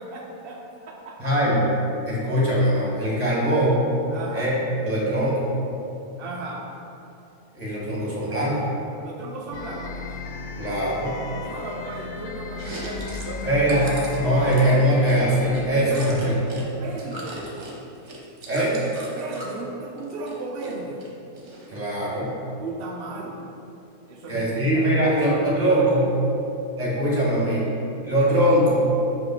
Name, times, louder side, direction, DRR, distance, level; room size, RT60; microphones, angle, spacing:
voice 1, 0.0-1.3 4.1-4.5 6.2-6.7 9.0-10.2 11.3-13.9 14.4-14.5 15.7-16.4 16.8-17.4 19.1-21.0 22.6-23.3 24.1-25.9, right 2 dB, 70° right, -1 dB, 0.5 m, -35 dB
voice 2, 1.2-1.7 2.1-3.8 4.3-4.6 4.8-5.5 7.5-8.7 10.6-11.1 13.5-16.3 17.3-17.4 18.5-18.8 21.7-22.3 24.3-26.1 26.8-27.6 28.0-28.9, equal, 25° right, -6 dB, 1.6 m, -21 dB
sound 1, 9.5-15.7, left 4 dB, 70° left, 1.0 m, -35 dB
Chewing mastication, 12.5-16.6 16.9-19.6 20.0-20.7 21.0-21.9, right 2 dB, 50° right, 1.2 m, -39 dB
5.9 x 5.0 x 3.9 m, 2.8 s
omnidirectional pair, 1.6 m